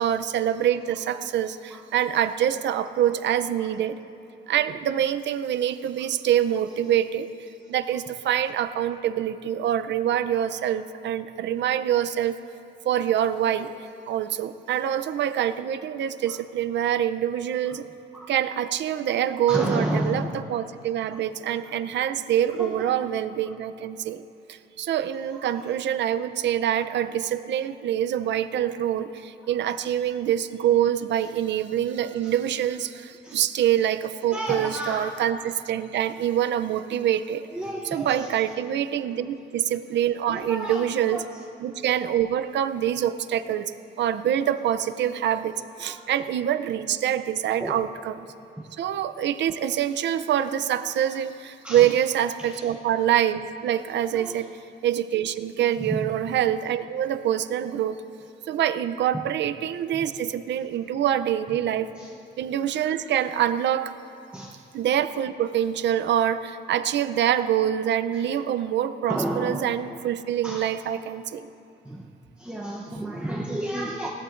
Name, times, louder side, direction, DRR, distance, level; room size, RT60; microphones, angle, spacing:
voice 1, 0.0-4.0 4.5-7.3 7.7-12.4 12.8-13.7 14.1-17.8 18.3-24.2 24.5-37.4 37.9-41.2 41.6-48.2 48.8-54.5 54.8-58.0 58.5-61.9 62.4-63.9 64.7-71.5, right 10 dB, 75° right, 12 dB, 0.5 m, -25 dB
voice 2, 19.5-20.5 21.1-21.2 22.5-23.1 25.3-25.7 29.4-29.5 29.8-29.9 31.2-31.3 32.2-32.3 33.2-33.4 34.3-35.2 37.5-38.5 39.1-39.3 40.3-41.5 45.8-46.0 47.6-47.8 48.6-48.7 51.6-52.0 52.4-52.7 54.1-54.5 55.8-56.1 59.1-59.2 59.9-60.1 62.0-62.1 64.3-64.6 68.1-68.4 69.1-69.6 70.4-70.7 71.8-72.1 72.4-74.1, right 1 dB, 5° right, -3 dB, 0.8 m, -32 dB
20.5 x 18.0 x 2.6 m, 2.6 s
wide cardioid pair, 165°, 19 cm